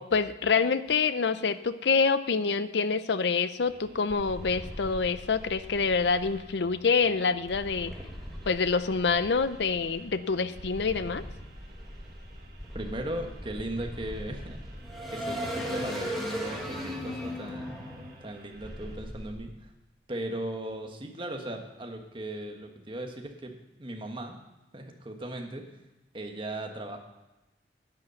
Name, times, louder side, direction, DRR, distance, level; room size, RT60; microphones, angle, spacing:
voice 1, 0.0-8.0 8.5-11.2, left 5 dB, 80° left, 13 dB, 0.6 m, -26 dB
sound 1, 3.6-19.0, right 1 dB, 55° right, 1.5 m, -54 dB
sound 2, 4.1-6.4 7.5-10.0 10.6-19.3, equal, ahead, 2.1 m, -39 dB
voice 2, 12.7-14.6 15.1-17.7 18.2-19.7 20.1-24.4 24.7-25.8 26.1-27.0, right 1 dB, 30° right, 3 dB, 1.4 m, -37 dB
10.5 x 8.4 x 6.8 m, 1.0 s
head